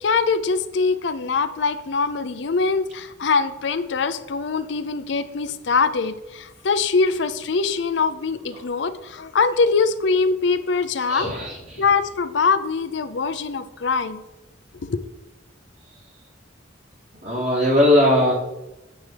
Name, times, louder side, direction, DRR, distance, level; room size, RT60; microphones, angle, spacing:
voice 1, 0.0-11.3 11.8-14.2 14.8-15.0, left 4 dB, 65° left, 12 dB, 0.5 m, -23 dB
voice 2, 11.1-11.8 15.9-16.0 17.2-18.3, left 1 dB, 60° right, -6 dB, 3.4 m, -19 dB
9.8 x 7.8 x 3.4 m, 0.99 s
head